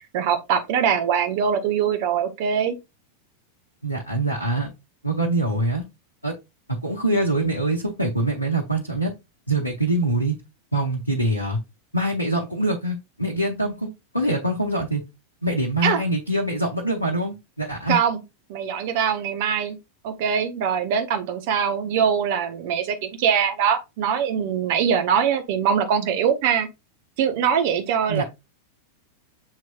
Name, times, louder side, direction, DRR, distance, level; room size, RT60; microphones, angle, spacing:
voice 1, 0.1-2.8 15.8-16.0 17.9-18.2 18.5-19.8 20.0-26.7 27.2-28.2, right 7 dB, 50° right, 0.8 m, -22 dB
voice 2, 3.8-4.7 5.0-5.8 6.2-6.3 6.7-9.1 9.5-10.4 10.7-11.6 11.9-13.9 14.1-15.0 15.4-18.0 28.1-28.2, right 1 dB, 90° left, 0.7 m, -24 dB
7.3 x 3.1 x 2.2 m
figure-of-eight pair, 90°, 0 cm